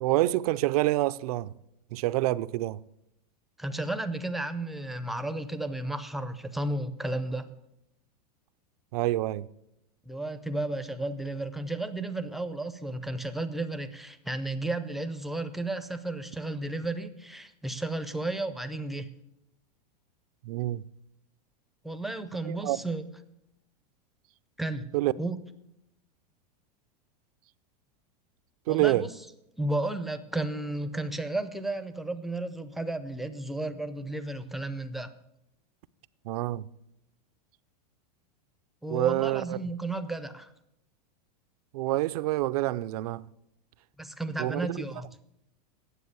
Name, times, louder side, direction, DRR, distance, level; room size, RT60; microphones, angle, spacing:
voice 1, 0.0-1.5 1.9-2.8 8.9-9.5 20.4-20.8 22.4-22.8 24.9-25.1 28.7-29.1 36.2-36.7 38.9-39.6 41.7-43.3 44.4-44.8, right 17 dB, 60° right, 0.5 m, -27 dB
voice 2, 3.6-7.5 10.0-19.1 21.8-23.1 24.6-24.9 25.2-25.4 28.7-29.1 29.6-35.1 38.8-40.5 44.0-45.1, right 2 dB, ahead, 0.5 m, -33 dB
9.7 x 7.4 x 8.1 m
supercardioid pair, 140°, 21 cm